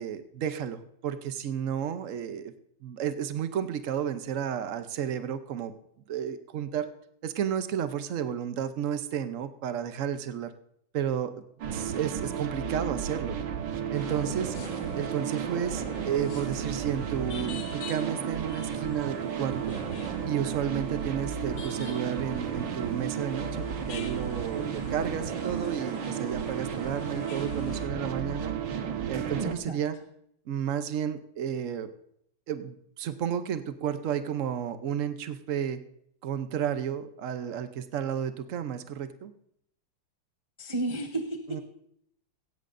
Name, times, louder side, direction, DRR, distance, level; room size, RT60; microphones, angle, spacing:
voice 1, 0.0-2.5 2.8-5.7 6.1-6.9 7.2-10.5 10.9-11.3 11.7-13.4 13.9-14.6 14.9-19.8 20.3-28.5 29.1-30.0 30.5-31.9 32.5-35.8 36.2-39.3 41.5-41.6, right 9 dB, 85° right, 10 dB, 0.6 m, -32 dB
sound 1, 11.6-29.5, right 7 dB, 65° right, 1.6 m, -33 dB
sound 2, 13.9-27.9, left 6 dB, 60° left, 1.5 m, -46 dB
voice 2, 29.4-29.8 40.6-41.6, right 2 dB, 30° right, 3 dB, 0.6 m, -32 dB
16.5 x 16.0 x 2.6 m, 0.71 s
omnidirectional pair, 2.3 m